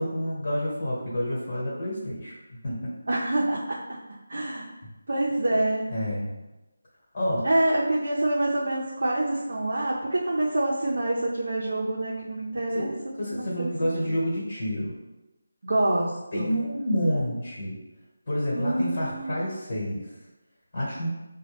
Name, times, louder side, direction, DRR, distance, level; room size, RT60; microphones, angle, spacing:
voice 1, 0.0-2.9 5.9-6.3 7.1-7.5 12.7-14.9 16.3-17.8 18.3-20.1 20.7-21.2, equal, 35° left, -5 dB, 1.3 m, -29 dB
voice 2, 3.1-3.8 4.3-4.7 5.1-5.9 7.4-13.7 15.6-16.5 18.5-19.4, right 1 dB, 60° right, -4 dB, 0.6 m, -26 dB
5.1 x 2.2 x 3.4 m, 1.0 s
figure-of-eight pair, 175°, 0 cm